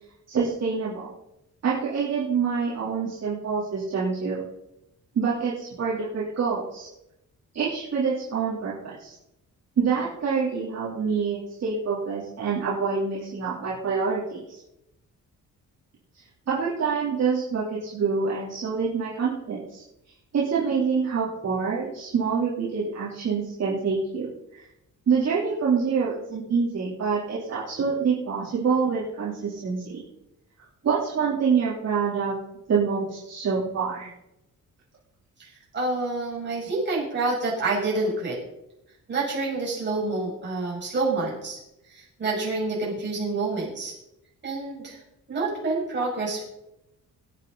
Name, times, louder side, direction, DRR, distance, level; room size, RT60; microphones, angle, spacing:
voice 1, 0.3-1.1 1.6-4.4 5.2-6.9 7.5-9.1 9.8-14.6 16.5-19.8 20.3-24.6 25.1-30.0 30.8-32.3 32.7-34.1, right 5 dB, 55° right, -8 dB, 3.5 m, -26 dB
voice 2, 35.7-38.4 39.1-41.6 41.9-43.9 44.4-45.0 45.3-46.4, right 3 dB, 35° right, -5 dB, 6.6 m, -28 dB
20.5 x 9.2 x 4.1 m, 0.87 s
wide cardioid pair, 165°, 32 cm